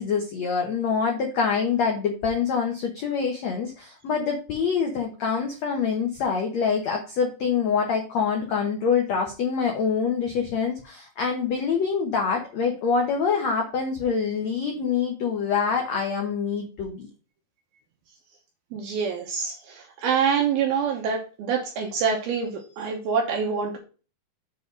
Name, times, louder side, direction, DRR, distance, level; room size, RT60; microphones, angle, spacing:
voice 1, 0.0-17.1, left 6 dB, 80° left, 2 dB, 1.5 m, -25 dB
voice 2, 18.7-23.8, right 6 dB, 70° right, 1 dB, 2.7 m, -26 dB
7.6 x 4.1 x 6.3 m, 0.36 s
omnidirectional pair, 4.9 m